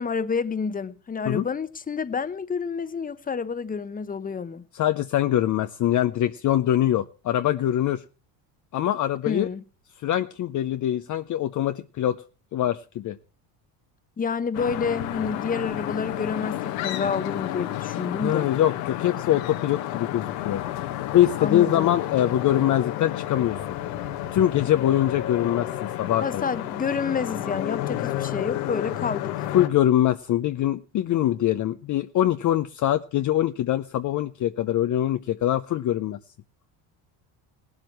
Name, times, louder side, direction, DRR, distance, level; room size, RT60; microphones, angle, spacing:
voice 1, 0.0-4.6 9.3-9.6 14.2-18.5 21.4-21.9 26.2-29.5, left 5 dB, 20° left, 0.9 m, -29 dB
voice 2, 4.7-8.0 8.7-9.5 10.0-12.2 12.5-13.2 18.2-20.7 21.1-23.8 24.3-26.4 29.5-36.2, left 12 dB, 40° left, 0.6 m, -23 dB
sound 1, 14.5-29.7, left 13 dB, 85° left, 1.6 m, -31 dB
18.0 x 12.0 x 3.1 m
supercardioid pair, 105°, 48 cm